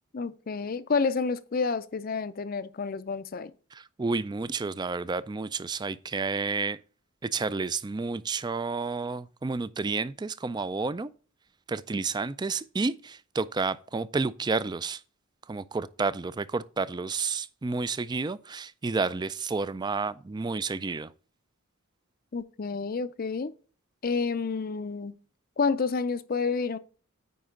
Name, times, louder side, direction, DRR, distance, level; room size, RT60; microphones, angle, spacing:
voice 1, 0.1-3.5 22.3-23.5 24.0-25.1 25.6-26.8, left 4 dB, 40° left, 0.5 m, -29 dB
voice 2, 3.7-6.8 7.2-11.1 11.7-15.0 15.5-21.1, right 4 dB, 20° right, 0.3 m, -30 dB
9.4 x 4.9 x 3.7 m
head